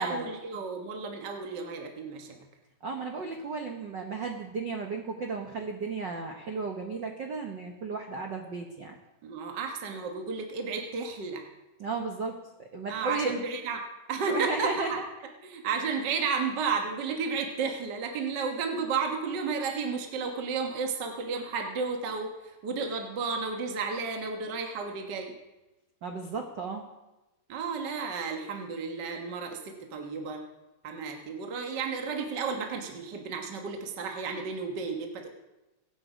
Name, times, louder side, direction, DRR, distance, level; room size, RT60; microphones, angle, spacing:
voice 1, 0.0-2.4 9.2-11.4 12.9-13.8 14.1-15.0 15.4-25.3 27.5-30.4 30.8-35.3, right 5 dB, 50° right, 3 dB, 1.3 m, -32 dB
voice 2, 2.8-8.9 11.8-13.3 14.3-15.0 26.0-26.9, right 4 dB, 90° right, 3 dB, 0.9 m, -34 dB
23.5 x 8.7 x 5.1 m, 1.0 s
omnidirectional pair, 3.9 m